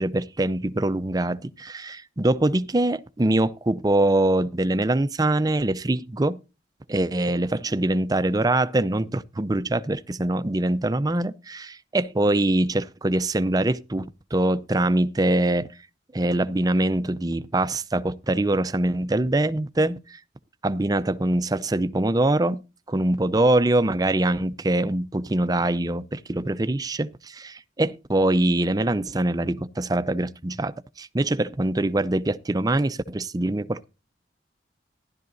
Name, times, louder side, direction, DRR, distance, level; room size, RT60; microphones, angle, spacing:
voice 1, 0.0-6.4 6.9-15.7 16.1-20.2 20.6-22.6 22.9-33.9, right 1 dB, 20° right, 0.5 m, -23 dB
15.0 x 11.5 x 2.6 m
head